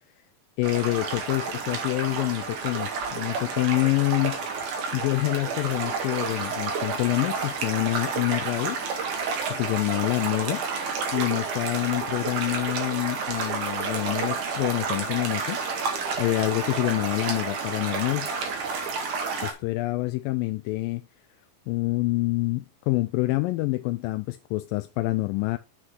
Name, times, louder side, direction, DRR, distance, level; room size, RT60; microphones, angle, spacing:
voice 1, 0.6-4.4 4.9-8.8 9.5-10.6 11.1-18.3 19.4-21.0 21.7-25.6, left 20 dB, 85° left, 2.2 m, -27 dB
sound 1, 0.6-19.5, right 5 dB, 65° right, 3.2 m, -30 dB
8.0 x 6.5 x 3.7 m
omnidirectional pair, 4.0 m